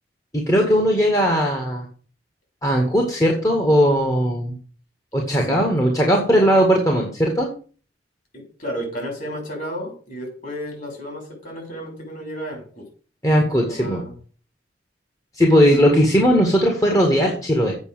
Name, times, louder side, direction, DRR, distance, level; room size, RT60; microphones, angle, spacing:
voice 1, 0.3-1.9 2.6-4.6 5.1-7.5 13.2-14.0 15.4-17.7, equal, 20° left, 0 dB, 1.9 m, -18 dB
voice 2, 8.3-12.8 13.6-14.1, equal, 50° left, 1 dB, 6.3 m, -32 dB
8.3 x 6.0 x 7.9 m, 0.40 s
head